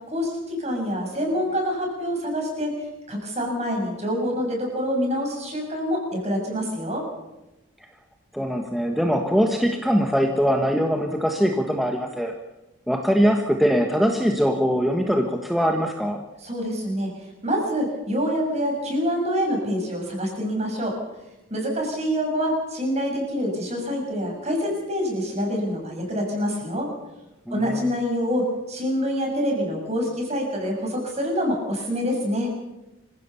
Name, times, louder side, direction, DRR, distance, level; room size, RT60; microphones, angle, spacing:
voice 1, 0.1-7.1 16.4-17.1 17.4-21.0 21.5-26.9 27.5-32.5, equal, 30° right, 1 dB, 6.8 m, -26 dB
voice 2, 8.3-12.3 12.9-16.2 27.5-27.9, equal, ahead, 2 dB, 1.4 m, -22 dB
26.0 x 16.0 x 7.0 m, 1.0 s
head